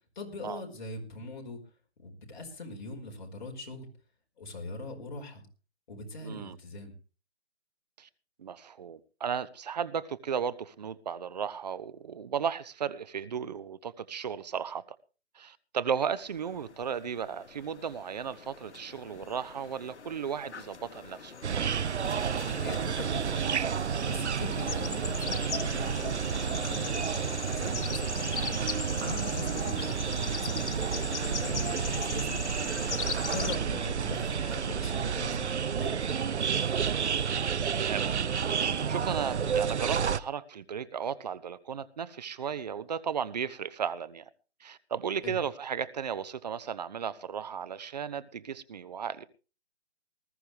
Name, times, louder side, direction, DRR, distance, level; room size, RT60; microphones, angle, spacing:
voice 1, 0.1-1.6 2.0-3.9 4.4-5.4 5.9-6.9 22.6-28.6 28.9-32.4 33.3-35.9 45.2-45.4, left 2 dB, 45° left, 5.0 m, -41 dB
voice 2, 6.2-6.6 8.0-8.1 8.4-14.8 15.3-21.4 29.4-29.6 36.8-37.2 37.8-38.2 38.5-44.2 44.6-49.3, right 7 dB, 40° right, 0.9 m, -35 dB
sound 1, 16.1-33.6, left 5 dB, 85° left, 1.1 m, -40 dB
sound 2, 21.4-40.2, right 7 dB, 80° right, 0.8 m, -30 dB
20.0 x 14.0 x 3.3 m
hypercardioid pair, 160°, 34 cm